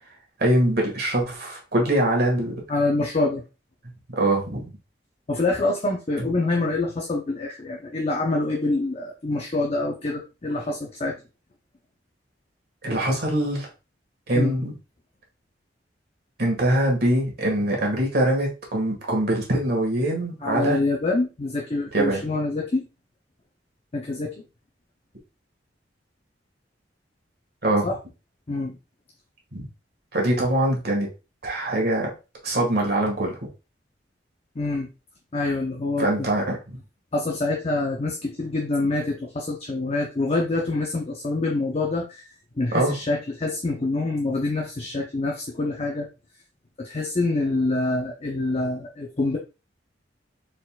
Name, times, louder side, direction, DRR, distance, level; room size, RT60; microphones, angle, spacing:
voice 1, 0.4-2.5 4.1-4.7 12.8-13.7 14.3-14.7 16.4-20.8 21.9-22.3 27.6-27.9 29.5-29.7 30.1-31.1 31.4-32.1 32.4-33.4 36.0-36.8 42.7-42.9, right 1 dB, 60° right, 0 dB, 1.7 m, -23 dB
voice 2, 2.7-3.4 5.3-11.2 14.3-14.5 20.4-22.8 23.9-24.4 27.8-28.0 28.5-28.8 34.6-34.9 35.3-36.3 37.1-42.3 42.6-46.1 46.8-49.4, left 2 dB, 35° left, 0 dB, 0.6 m, -26 dB
4.4 x 4.0 x 2.3 m, 0.30 s
head